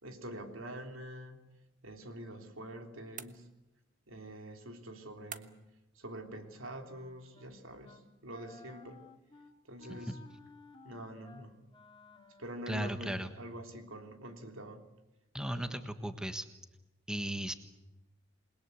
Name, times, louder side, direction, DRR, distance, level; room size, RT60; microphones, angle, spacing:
voice 1, 0.0-1.4 1.8-3.5 4.1-5.6 5.9-9.0 9.7-10.2 10.8-11.6 12.4-14.8 15.5-15.9, right 1 dB, 75° right, 6 dB, 3.4 m, -46 dB
sound 1, 3.2-3.9 5.3-5.8, right 8 dB, 40° right, 1.2 m, -48 dB
Wind instrument woodwind instrument, 6.4-7.5 7.8-8.1 8.3-13.6, left 4 dB, 25° left, 2.2 m, -57 dB
voice 2, 12.7-13.3 15.3-16.5 17.1-17.5, right 1 dB, 5° right, 9 dB, 1.4 m, -36 dB
28.0 x 21.0 x 8.3 m, 1.0 s
head